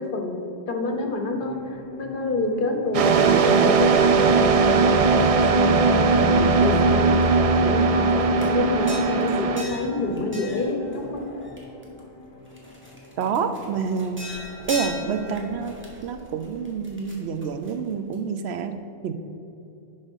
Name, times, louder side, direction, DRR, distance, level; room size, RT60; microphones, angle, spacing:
voice 1, 0.0-7.2 7.6-11.3, left 2 dB, 55° left, 4 dB, 1.0 m, -28 dB
sound 1, 0.9-14.2, left 3 dB, 25° left, 0.8 m, -39 dB
sound 2, 2.9-9.6, right 4 dB, 55° right, 0.4 m, -19 dB
sound 3, 5.2-7.2 7.6-12.0 12.4-18.4, equal, 10° right, 1.4 m, -40 dB
voice 2, 13.2-14.2 14.7-15.7 16.0-18.7 19.0-19.1, right 6 dB, 85° right, 8 dB, 0.9 m, -27 dB
11.0 x 3.7 x 5.4 m, 2.9 s
omnidirectional pair, 1.1 m